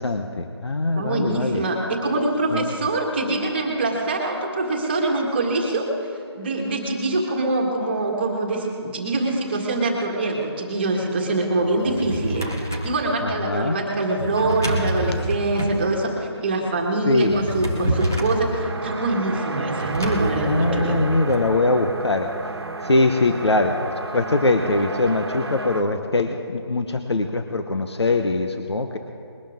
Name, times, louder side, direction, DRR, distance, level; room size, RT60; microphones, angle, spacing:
voice 1, 0.0-1.6 2.5-2.7 13.2-13.8 17.1-17.4 20.5-22.3 22.8-29.0, left 2 dB, 75° left, 5 dB, 1.1 m, -22 dB
voice 2, 1.0-5.9 6.3-12.5 12.8-21.0, right 2 dB, 25° right, 0 dB, 1.7 m, -24 dB
Drawer open or close, 11.7-13.0 14.1-15.8 17.1-18.5 19.8-21.4, right 1 dB, 5° left, 0.4 m, -27 dB
sound 1, 17.9-25.8, right 3 dB, 65° right, 1.2 m, -31 dB
21.0 x 11.5 x 3.7 m, 2.3 s
figure-of-eight pair, 170°, 14 cm